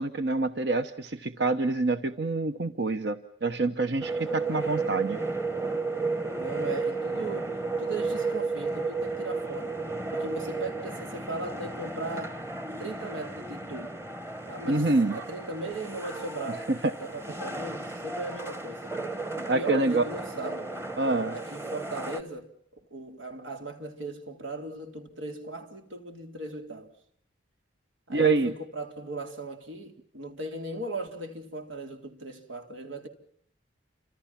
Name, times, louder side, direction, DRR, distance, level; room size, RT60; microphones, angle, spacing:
voice 1, 0.0-5.2 14.7-15.2 16.8-16.9 19.5-20.0 21.0-21.4 28.1-28.5, right 3 dB, 60° right, 1.0 m, -26 dB
sound 1, 4.0-22.2, right 3 dB, 15° right, 1.2 m, -33 dB
voice 2, 6.4-9.8 10.1-12.4 12.8-13.9 14.4-16.7 17.0-18.8 19.4-20.9 21.3-22.5 22.9-26.9 28.1-33.1, right 2 dB, 90° right, 3.9 m, -38 dB
29.5 x 26.5 x 6.0 m
head